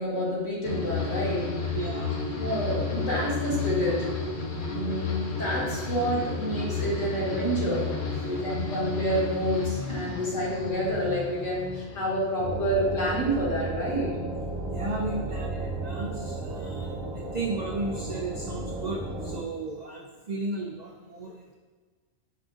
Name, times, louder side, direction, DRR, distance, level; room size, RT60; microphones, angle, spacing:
voice 1, 0.0-1.8 2.4-4.1 4.6-7.9 8.2-14.1, equal, 70° left, -6 dB, 1.7 m, -28 dB
sound 1, 0.6-14.0 14.3-14.9, left 4 dB, 50° left, 0.7 m, -32 dB
voice 2, 1.7-2.1 8.1-8.3 14.7-21.5, right 2 dB, 90° right, -1 dB, 0.3 m, -35 dB
sound 2, 12.4-19.4, right 2 dB, 55° right, 1.2 m, -34 dB
5.6 x 3.7 x 2.4 m, 1.4 s
omnidirectional pair, 1.3 m